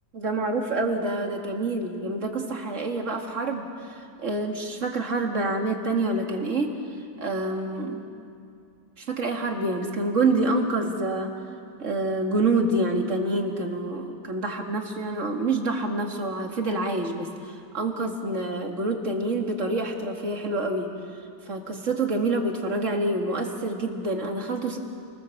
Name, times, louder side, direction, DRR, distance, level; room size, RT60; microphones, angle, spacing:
voice 1, 0.1-3.7 4.2-6.7 7.2-8.0 9.0-11.3 11.8-20.9 21.5-24.8, right 2 dB, 45° right, 2 dB, 2.5 m, -27 dB
29.5 x 20.0 x 7.3 m, 2.4 s
omnidirectional pair, 1.9 m